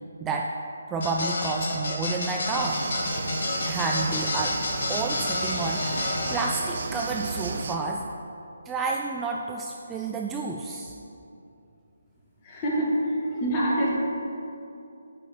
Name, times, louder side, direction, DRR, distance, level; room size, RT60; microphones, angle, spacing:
voice 1, 0.2-0.5 0.9-2.8 3.6-4.6 4.9-8.0 8.7-11.0, right 3 dB, 10° right, 0 dB, 0.3 m, -30 dB
sound 1, 1.0-6.5, left 2 dB, 55° left, 1.3 m, -30 dB
sound 2, 2.6-7.8, right 4 dB, 50° right, 0.6 m, -34 dB
voice 2, 12.4-13.9, right 1 dB, 25° left, -5 dB, 1.9 m, -26 dB
9.4 x 4.5 x 5.8 m, 2.7 s
figure-of-eight pair, 145°, 0 cm